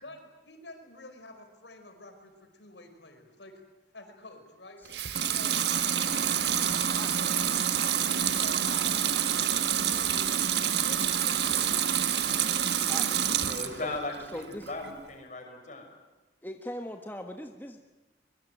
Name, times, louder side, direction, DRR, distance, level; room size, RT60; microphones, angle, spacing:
voice 1, 0.0-3.5 3.9-4.8 5.2-5.6 7.1-10.6 10.8-13.3, left 2 dB, 80° left, 5 dB, 5.1 m, -49 dB
Water tap faucet / Sink (filling or washing) / Liquid, 4.9-13.8 14.2-14.9, right 9 dB, 70° right, 1.5 m, -27 dB
sound 1, 5.7-14.0, right 3 dB, 85° right, 3.2 m, -43 dB
voice 2, 7.0-7.4 12.7-13.0 13.7-13.9 14.3-14.7 16.4-17.8, left 1 dB, 10° left, 4 dB, 1.4 m, -41 dB
voice 3, 13.5-15.9, left 2 dB, 40° left, 3 dB, 6.2 m, -38 dB
24.0 x 22.5 x 9.1 m, 1.1 s
head